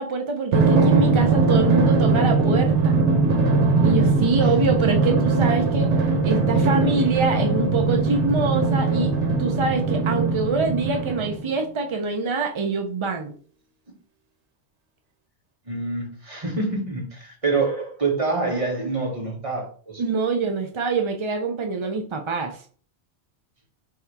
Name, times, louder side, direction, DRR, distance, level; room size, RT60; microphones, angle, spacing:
voice 1, 0.0-3.0 3.8-5.9 6.2-9.1 9.4-13.3 20.0-22.6, right 4 dB, 50° right, 0.3 m, -25 dB
Drum, 0.5-11.6, right 3 dB, 85° right, 1.1 m, -20 dB
voice 2, 15.7-20.0, right 3 dB, 30° right, 1.3 m, -26 dB
3.5 x 2.7 x 4.5 m
omnidirectional pair, 1.1 m